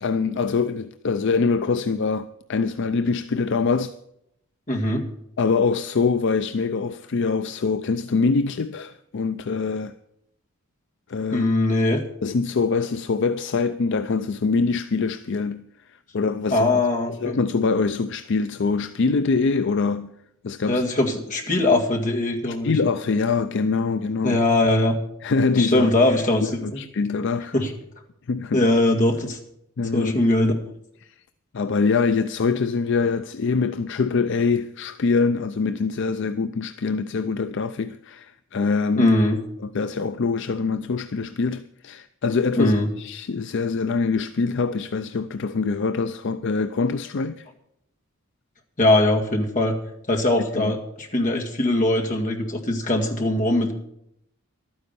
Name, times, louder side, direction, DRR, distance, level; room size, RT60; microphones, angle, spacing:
voice 1, 0.0-4.0 5.4-9.9 11.1-11.5 12.2-15.6 16.1-16.7 17.1-20.1 20.4-20.8 22.5-24.4 25.2-25.9 26.6-27.5 28.3-28.7 29.8-30.2 31.0-31.1 31.5-39.1 39.6-47.5 50.5-50.7, left 4 dB, 60° left, 0.5 m, -24 dB
voice 2, 4.7-5.0 11.3-12.0 16.5-17.4 20.7-22.7 24.2-25.0 25.6-26.8 27.5-27.7 28.5-29.4 29.9-30.5 39.0-39.4 42.6-42.9 48.8-49.7 50.1-53.7, left 1 dB, 35° left, 1.9 m, -21 dB
12.5 x 9.6 x 6.8 m
head